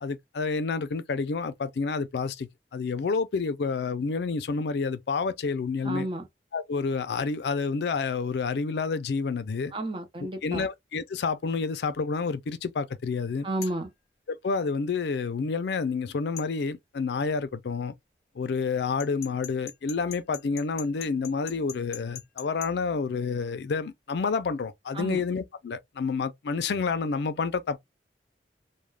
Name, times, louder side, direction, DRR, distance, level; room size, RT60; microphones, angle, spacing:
voice 1, 0.0-6.1 6.5-9.7 10.2-13.5 14.3-17.9 18.4-27.8, left 4 dB, 75° left, 0.4 m, -29 dB
voice 2, 5.8-6.3 9.7-10.7 13.4-13.9 24.9-25.2, right 1 dB, 30° right, 0.6 m, -32 dB
sound 1, 13.6-13.9 16.4-16.5 19.0-22.7, left 10 dB, 60° left, 0.8 m, -41 dB
2.3 x 2.1 x 3.1 m
head